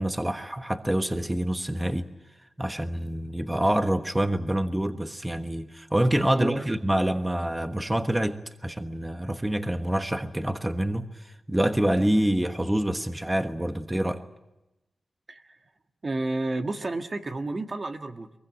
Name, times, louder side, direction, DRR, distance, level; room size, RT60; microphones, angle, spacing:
voice 1, 0.0-2.1 2.6-14.2, right 1 dB, 10° right, 1.3 m, -26 dB
voice 2, 16.0-18.3, right 2 dB, 40° right, 1.6 m, -31 dB
23.0 x 22.0 x 9.1 m
cardioid pair, 70°, 0 cm